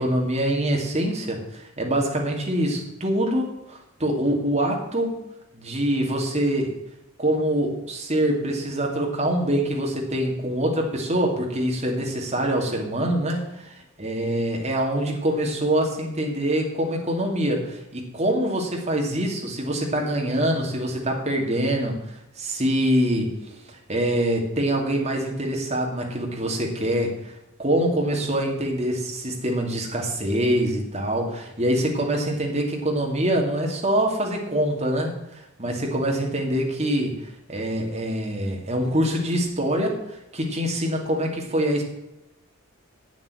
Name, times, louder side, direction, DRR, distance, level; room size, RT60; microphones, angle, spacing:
voice 1, 0.0-5.2 5.5-6.7 7.2-23.5 23.9-41.8, right 1 dB, 35° right, 1 dB, 2.5 m, -25 dB
8.7 x 7.4 x 8.4 m, 0.90 s
head